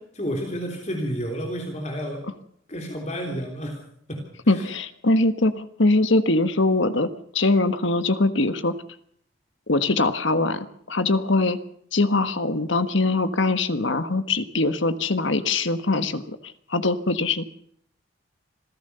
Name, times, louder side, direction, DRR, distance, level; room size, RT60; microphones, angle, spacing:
voice 1, 0.2-2.3 2.7-3.8 4.1-4.7, equal, 35° left, 2 dB, 3.4 m, -31 dB
voice 2, 4.5-8.7 9.7-11.6 11.9-16.4 16.7-17.4, left 2 dB, 65° left, 11 dB, 1.5 m, -22 dB
26.5 x 16.0 x 6.9 m, 0.67 s
head